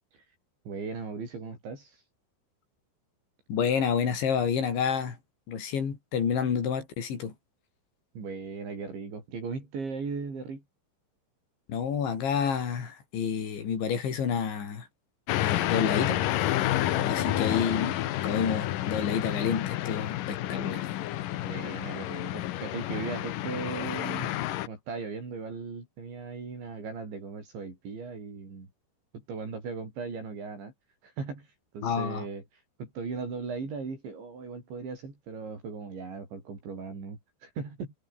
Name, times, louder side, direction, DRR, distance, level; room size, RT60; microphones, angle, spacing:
voice 1, 0.7-2.0 8.1-10.6 16.9-17.5 21.4-24.3 24.7-28.7 29.1-30.7 31.0-31.5 31.7-32.4 32.8-37.9, right 4 dB, 70° right, 10.0 m, -38 dB
voice 2, 3.5-5.2 5.5-7.3 11.7-14.9 15.4-16.2 17.0-18.0 18.2-20.8 31.8-32.3, left 7 dB, 70° left, 7.0 m, -29 dB
sound 1, 15.3-24.7, left 14 dB, 85° left, 1.9 m, -30 dB
omnidirectional pair, 5.5 m